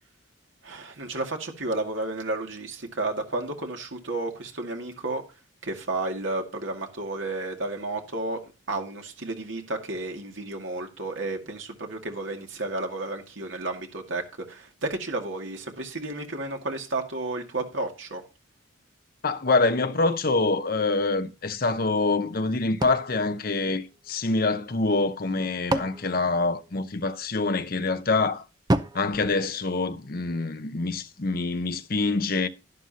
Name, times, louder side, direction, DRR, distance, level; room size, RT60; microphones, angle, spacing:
voice 1, 0.6-5.2 5.6-8.4 8.7-18.2, right 2 dB, 70° right, 2.2 m, -32 dB
voice 2, 19.2-28.4 28.9-32.5, left 3 dB, 45° left, 0.8 m, -25 dB
sound 1, 22.8-24.3 25.2-27.2 28.7-30.3, right 1 dB, 20° right, 0.5 m, -32 dB
11.5 x 11.0 x 2.8 m
head